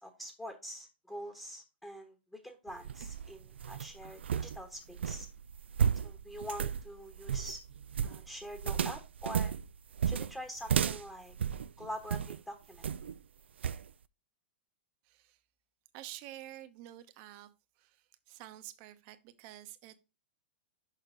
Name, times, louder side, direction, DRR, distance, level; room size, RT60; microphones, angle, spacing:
voice 1, 0.0-5.3 6.0-7.6 8.0-9.5 10.0-11.4 11.8-12.8, equal, 5° left, 1.3 m, -45 dB
sound 1, 2.7-12.4 12.8-13.2 13.6-13.9, right 8 dB, 80° right, 0.4 m, -34 dB
voice 2, 15.0-15.4 15.9-17.5 17.8-20.0, right 14 dB, 45° right, 1.0 m, -49 dB
6.7 x 5.3 x 3.8 m
hypercardioid pair, 120°, 6 cm